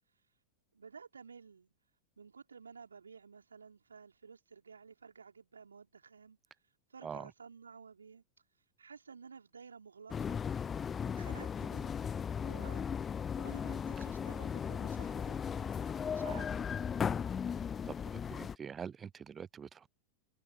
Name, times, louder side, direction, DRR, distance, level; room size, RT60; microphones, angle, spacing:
voice 1, 0.7-1.7 2.2-6.4 6.9-8.2 8.8-10.4 11.1-12.1 12.4-15.8 16.1-16.5, right 5 dB, 75° right, 4.6 m, -54 dB
sound 1, 10.1-18.5, left 7 dB, 20° left, 0.8 m, -37 dB
voice 2, 17.9-19.9, right 7 dB, 20° right, 0.3 m, -45 dB
figure-of-eight pair, 90°, 0 cm